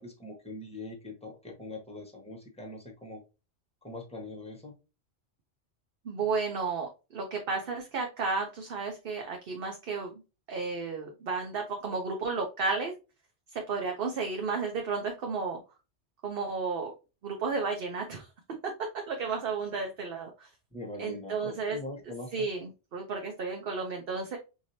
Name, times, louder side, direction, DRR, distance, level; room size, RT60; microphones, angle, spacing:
voice 1, 0.0-3.2 3.8-4.7 20.7-22.5, left 2 dB, 5° left, 2 dB, 1.1 m, -42 dB
voice 2, 6.0-10.1 10.5-12.9 13.5-15.6 16.2-16.9 17.2-18.3 18.6-18.7 19.1-20.5 21.0-21.8 22.1-24.4, right 4 dB, 55° right, 2 dB, 0.9 m, -33 dB
4.7 x 2.8 x 2.7 m, 0.29 s
omnidirectional pair, 1.2 m